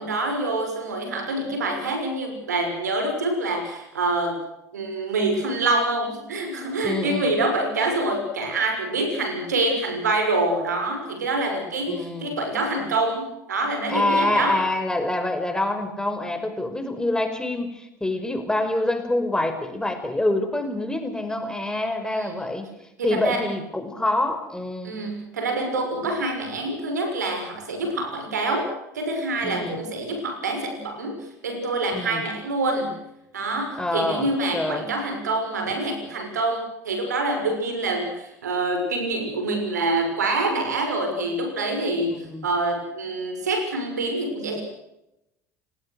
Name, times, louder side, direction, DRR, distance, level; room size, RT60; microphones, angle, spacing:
voice 1, 0.0-4.4 4.7-14.6 22.1-22.3 23.0-23.4 24.8-33.0 33.3-44.6, right 2 dB, 80° right, 5 dB, 6.2 m, -26 dB
voice 2, 6.8-7.3 11.9-12.3 13.9-22.7 23.0-25.0 29.4-29.8 31.9-32.2 33.8-34.3 34.5-34.9 42.1-42.5, left 1 dB, 10° left, 7 dB, 5.2 m, -26 dB
30.0 x 19.5 x 6.5 m, 0.86 s
figure-of-eight pair, 70°, 9 cm